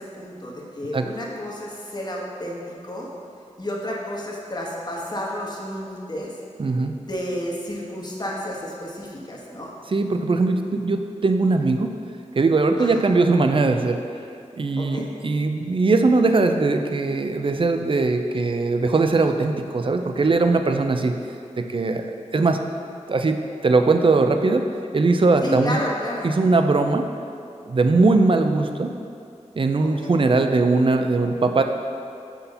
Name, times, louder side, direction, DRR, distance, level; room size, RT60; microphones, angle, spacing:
voice 1, 0.0-3.1 3.6-6.3 6.9-9.7 12.8-13.0 14.8-15.1 25.4-26.3 29.8-30.2, left 1 dB, 35° left, -3 dB, 1.2 m, -31 dB
voice 2, 6.6-7.0 9.9-11.9 12.4-14.0 14.6-21.2 21.6-22.1 22.3-22.6 23.1-24.6 24.9-25.8 26.2-27.1 27.7-28.9 29.6-31.6, right 3 dB, 45° right, 6 dB, 0.5 m, -20 dB
5.7 x 4.2 x 5.4 m, 2.5 s
wide cardioid pair, 70°, 13 cm